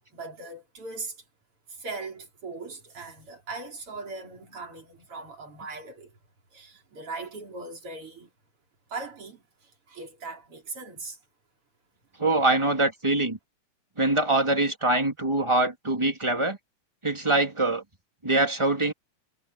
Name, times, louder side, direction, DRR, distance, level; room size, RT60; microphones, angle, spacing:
voice 1, 0.1-1.2 1.8-6.1 6.5-8.3 8.9-9.4 9.9-11.2, right 3 dB, 50° right, 5.0 m, -39 dB
voice 2, 12.2-13.4 14.0-16.6 17.0-17.8 18.2-18.9, right 2 dB, 10° right, 2.1 m, -24 dB
omnidirectional pair, 3.3 m